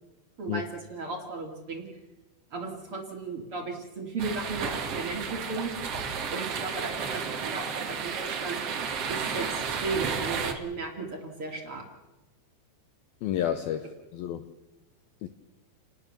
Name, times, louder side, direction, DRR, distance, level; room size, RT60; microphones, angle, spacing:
voice 1, 0.4-1.9 2.5-5.7 6.3-8.6 9.1-11.8, right 3 dB, 35° right, 2 dB, 2.9 m, -35 dB
sound 1, 4.2-10.5, right 6 dB, 65° right, 1.5 m, -32 dB
voice 2, 13.2-14.5 15.2-15.3, left 10 dB, 85° left, 9 dB, 2.1 m, -31 dB
29.5 x 19.5 x 6.8 m, 1.0 s
omnidirectional pair, 5.6 m